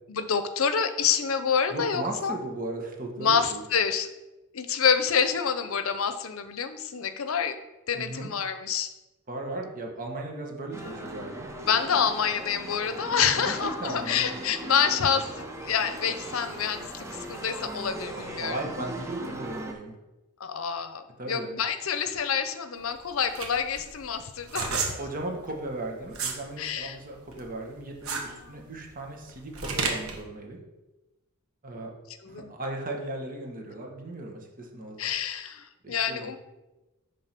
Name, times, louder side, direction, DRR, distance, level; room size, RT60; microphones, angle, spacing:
voice 1, 0.1-2.4 3.2-4.1 4.5-7.6 7.9-8.9 11.7-18.6 20.4-24.9 26.6-27.0 28.2-28.7 32.2-32.5 35.0-36.4, left 7 dB, 70° left, 10 dB, 0.7 m, -27 dB
voice 2, 1.7-3.6 7.9-8.3 9.3-11.5 13.2-14.2 18.2-19.9 21.2-21.5 24.7-30.6 31.6-31.9 32.2-35.0 35.8-36.3, right 2 dB, 40° right, 1 dB, 1.5 m, -36 dB
sound 1, 10.7-19.7, right 1 dB, 15° right, 0.9 m, -39 dB
sound 2, 22.8-26.4 26.8-30.2, right 5 dB, 90° right, 1.3 m, -32 dB
9.4 x 3.8 x 6.0 m, 1.1 s
head